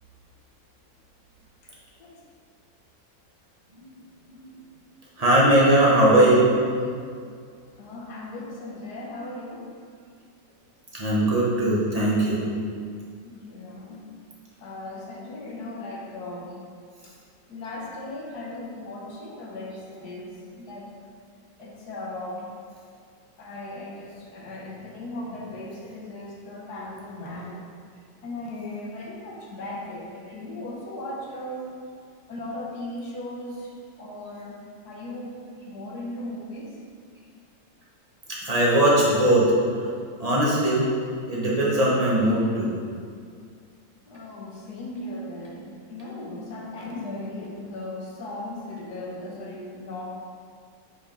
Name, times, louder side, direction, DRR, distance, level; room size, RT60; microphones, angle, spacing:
voice 1, 1.6-2.2 7.8-9.7 13.1-14.1 14.6-16.5 17.0-17.1 17.5-20.9 21.6-22.5 23.3-27.7 28.2-31.8 32.3-33.7 34.0-35.4 35.7-36.8 44.1-50.0, left 1 dB, 60° left, -2 dB, 1.4 m, -37 dB
voice 2, 5.2-6.6 10.9-12.4 38.3-39.5 39.8-39.9 40.2-40.9 41.3-42.8, right 1 dB, 20° right, -6 dB, 1.3 m, -20 dB
5.2 x 5.0 x 5.2 m, 2.2 s
omnidirectional pair, 2.0 m